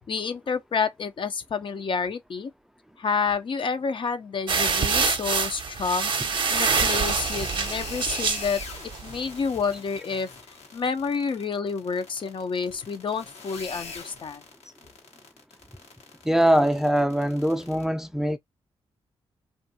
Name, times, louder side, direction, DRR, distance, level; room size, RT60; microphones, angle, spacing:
voice 1, 0.1-2.5 3.0-6.1 6.5-8.6 9.0-10.3 10.7-14.4, left 5 dB, 50° left, 0.5 m, -29 dB
sound 1, 4.5-9.2, right 5 dB, 50° right, 0.6 m, -25 dB
sound 2, 6.5-17.8, left 4 dB, 80° left, 1.0 m, -41 dB
voice 2, 16.2-18.4, equal, 5° right, 0.4 m, -22 dB
2.6 x 2.4 x 2.6 m
cardioid pair, 55°, 11 cm